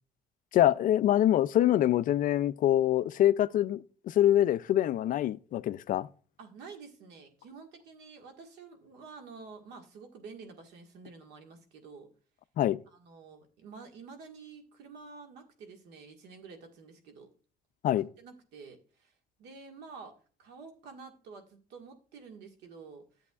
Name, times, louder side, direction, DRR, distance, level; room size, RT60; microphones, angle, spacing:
voice 1, 0.5-6.1 12.6-12.8 17.8-18.1, left 12 dB, 55° left, 0.4 m, -25 dB
voice 2, 6.4-12.1 12.9-17.3 18.2-19.1 19.4-23.0, right 4 dB, 85° right, 1.7 m, -49 dB
11.0 x 7.7 x 2.4 m
cardioid pair, 110°, 17 cm